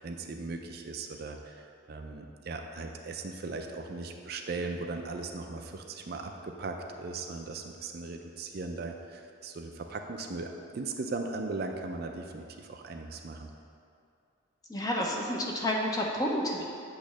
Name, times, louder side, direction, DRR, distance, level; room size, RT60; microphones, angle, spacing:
voice 1, 0.0-1.5 1.9-13.5, right 3 dB, 50° right, 4 dB, 0.4 m, -38 dB
voice 2, 14.7-16.6, left 1 dB, 20° left, -1 dB, 0.7 m, -30 dB
8.4 x 3.1 x 6.1 m, 2.5 s
head